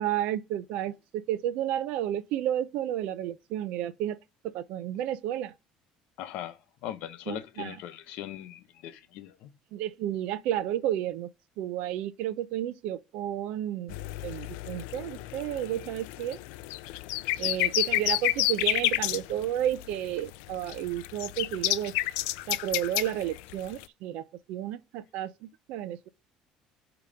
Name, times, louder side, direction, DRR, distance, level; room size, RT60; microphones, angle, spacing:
voice 1, 0.0-4.2 4.4-5.5 7.3-7.8 9.7-11.3 11.6-14.0 14.2-16.4 17.4-22.0 22.5-26.1, right 11 dB, 60° right, 0.6 m, -32 dB
voice 2, 6.2-9.5 17.4-17.5, left 11 dB, 60° left, 0.8 m, -40 dB
sound 1, 13.9-23.8, left 17 dB, 90° left, 0.4 m, -30 dB
8.6 x 3.0 x 4.9 m
cardioid pair, 170°, 2 cm